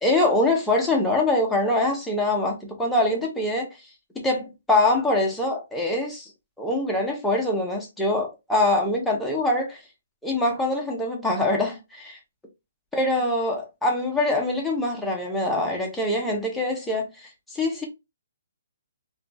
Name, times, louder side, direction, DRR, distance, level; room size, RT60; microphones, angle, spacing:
voice 1, 0.0-3.7 4.2-6.3 6.6-9.8 10.2-12.2 12.9-17.9, left 2 dB, 5° left, 0.5 m, -24 dB
2.8 x 2.2 x 2.4 m
hypercardioid pair, 165°, 0 cm